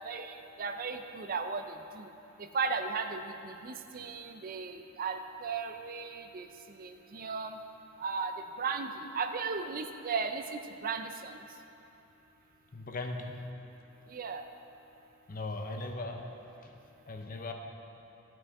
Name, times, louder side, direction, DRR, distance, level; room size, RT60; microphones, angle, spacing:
voice 1, 0.0-1.6 1.9-2.1 2.5-6.5 6.8-7.6 8.0-8.3 8.6-11.4 14.1-14.4, right 5 dB, 40° right, 7 dB, 0.5 m, -36 dB
voice 2, 12.7-13.4 15.3-16.3 16.6-16.7 17.1-17.5, left 2 dB, 40° left, 4 dB, 0.8 m, -38 dB
14.0 x 6.1 x 4.7 m, 3.0 s
head